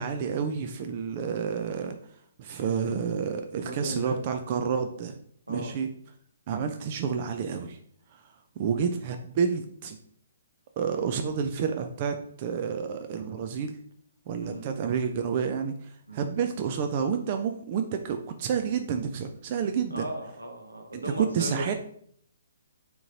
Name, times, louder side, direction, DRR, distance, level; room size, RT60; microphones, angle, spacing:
voice 1, 0.0-2.0 2.4-5.2 5.5-5.9 6.5-7.8 8.1-8.2 8.6-10.0 10.8-13.8 14.3-20.1 20.9-21.7, right 6 dB, 40° right, 6 dB, 0.4 m, -29 dB
voice 2, 3.6-4.2 5.5-5.7 14.4-14.7 16.1-16.3 19.9-21.8, right 1 dB, 90° right, 2 dB, 1.0 m, -36 dB
3.6 x 3.0 x 3.9 m, 0.63 s
figure-of-eight pair, 130°, 0 cm